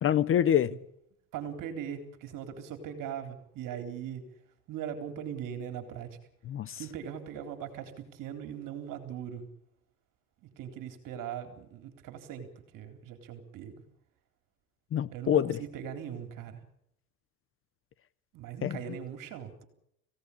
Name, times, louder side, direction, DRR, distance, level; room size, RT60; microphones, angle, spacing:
voice 1, 0.0-0.7 6.5-6.8 14.9-15.6 18.6-18.8, left 10 dB, 30° left, 0.8 m, -26 dB
voice 2, 1.3-4.2 4.7-6.2 6.8-9.5 10.4-13.8 15.1-16.6 18.3-19.6, right 8 dB, 45° right, 3.9 m, -40 dB
25.0 x 17.0 x 8.5 m
supercardioid pair, 105°, 43 cm